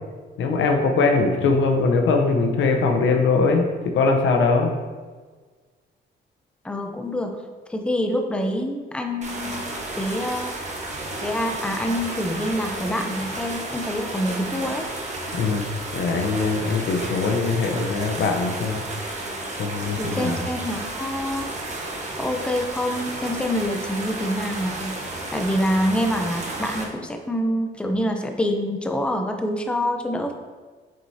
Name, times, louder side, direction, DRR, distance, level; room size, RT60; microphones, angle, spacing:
voice 1, 0.4-4.7 15.3-15.7 15.9-18.8 19.6-20.5, left 4 dB, 75° left, 3 dB, 0.9 m, -21 dB
voice 2, 6.6-7.4 7.7-9.6 10.0-10.5 11.2-14.9 20.0-21.5 22.2-25.0 25.3-30.3, equal, 5° left, 4 dB, 0.6 m, -26 dB
sound 1, 9.2-26.8, right 2 dB, 35° right, 1.3 m, -32 dB
7.6 x 4.6 x 2.8 m, 1.4 s
cardioid pair, 90°, 20 cm